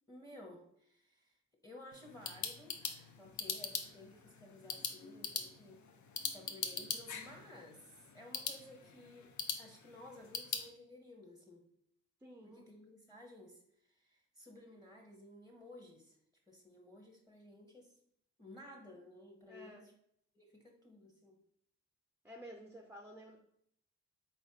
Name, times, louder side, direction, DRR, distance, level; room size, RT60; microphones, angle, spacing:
voice 1, 0.1-5.8 6.3-11.7 12.4-16.2 16.5-18.0 18.4-19.9 20.3-21.4, left 1 dB, 10° left, 1 dB, 0.9 m, -55 dB
sound 1, 1.9-10.7, left 6 dB, 60° left, 0.6 m, -42 dB
voice 2, 12.2-12.6 19.5-19.9 22.2-23.4, equal, 5° right, 2 dB, 0.4 m, -52 dB
4.1 x 3.2 x 2.8 m, 0.69 s
cardioid pair, 65°, 33 cm